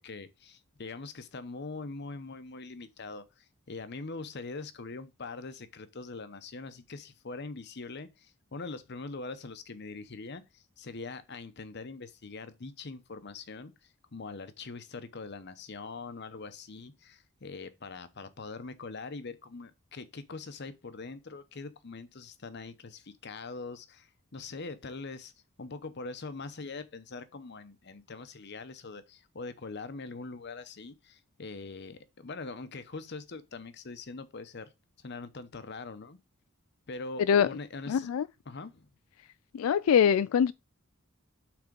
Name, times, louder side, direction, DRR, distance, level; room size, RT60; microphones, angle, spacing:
voice 1, 0.0-25.3 25.6-34.7 35.0-36.2 36.9-38.1 38.5-38.9, left 3 dB, 55° left, 0.8 m, -43 dB
voice 2, 37.9-38.3 39.5-40.5, left 8 dB, 90° left, 0.3 m, -23 dB
6.0 x 4.3 x 5.1 m
head